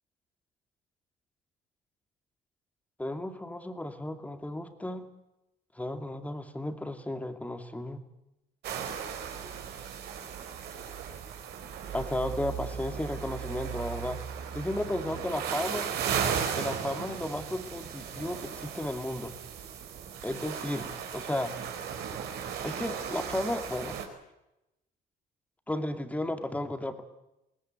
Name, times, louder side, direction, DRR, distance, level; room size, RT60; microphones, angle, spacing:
voice 1, 3.0-5.1 5.7-8.0 11.9-14.2 14.5-16.0 16.6-19.4 20.2-21.6 22.6-24.1 25.7-27.0, left 1 dB, 10° left, 7 dB, 2.4 m, -34 dB
sound 1, 8.6-24.1, right 7 dB, 75° right, 4.4 m, -36 dB
22.0 x 18.0 x 9.0 m, 0.91 s
cardioid pair, 110°, 17 cm